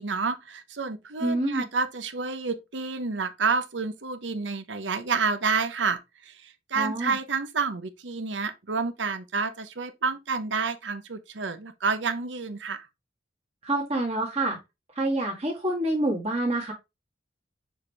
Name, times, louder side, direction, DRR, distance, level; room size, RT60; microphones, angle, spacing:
voice 1, 0.0-12.9, right 4 dB, 80° right, 0.9 m, -29 dB
voice 2, 1.2-1.6 6.7-7.2 13.6-14.6 14.9-16.7, right 1 dB, 35° right, 1.8 m, -27 dB
6.4 x 5.0 x 3.4 m
head